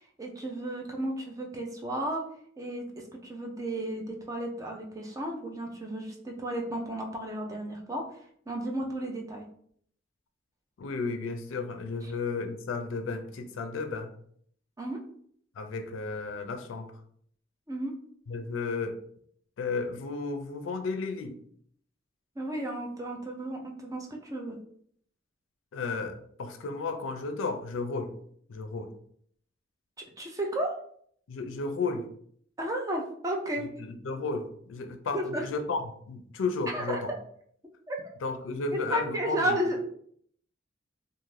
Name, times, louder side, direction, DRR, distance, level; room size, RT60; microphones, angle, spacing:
voice 1, 0.2-2.2 2.6-2.8 3.2-8.2 8.5-9.4 14.8-15.0 17.7-17.9 22.4-24.6 30.2-30.7 32.6-33.7 35.1-35.5 36.7-37.0 37.9-38.0 38.7-39.8, right 1 dB, 15° right, 0 dB, 0.4 m, -33 dB
voice 2, 10.8-14.1 15.6-16.9 18.3-19.0 19.6-21.4 25.7-28.1 28.5-28.9 31.3-32.1 33.8-37.1 38.2-39.6, left 3 dB, 80° left, 8 dB, 0.4 m, -33 dB
2.5 x 2.5 x 3.1 m, 0.63 s
head